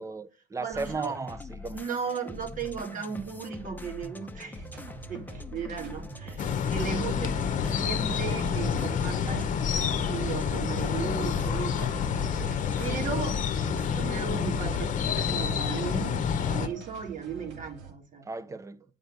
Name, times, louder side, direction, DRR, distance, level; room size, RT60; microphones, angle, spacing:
voice 1, 0.0-1.8 18.2-18.8, right 4 dB, 20° right, 0.7 m, -35 dB
voice 2, 0.6-1.1 1.7-4.6 5.1-7.3 7.8-11.9 12.8-13.4 13.9-18.2, right 6 dB, 50° right, 3.2 m, -36 dB
sound 1, 0.7-16.1, left 3 dB, 10° left, 0.9 m, -43 dB
sound 2, 4.5-17.9, right 6 dB, 85° right, 2.4 m, -46 dB
sound 3, 6.4-16.7, left 7 dB, 50° left, 1.0 m, -28 dB
9.5 x 5.2 x 6.7 m
cardioid pair, 110°, 17 cm